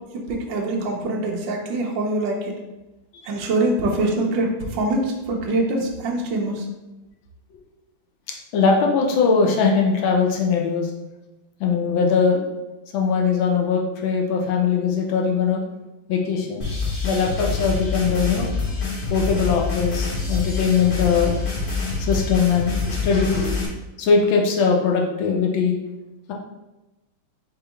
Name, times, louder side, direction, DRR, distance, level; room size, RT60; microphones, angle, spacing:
voice 1, 0.1-2.5 3.2-6.7, right 2 dB, 70° right, 0 dB, 1.4 m, -24 dB
voice 2, 8.5-10.9 11.6-12.4 12.9-15.6 16.1-16.6 17.0-18.5 19.1-21.4 22.0-23.6 24.0-25.8, left 5 dB, 75° left, 0 dB, 1.4 m, -20 dB
sound 1, 16.6-23.7, left 4 dB, 50° left, 0.6 m, -26 dB
4.0 x 3.7 x 3.3 m, 1.0 s
omnidirectional pair, 2.3 m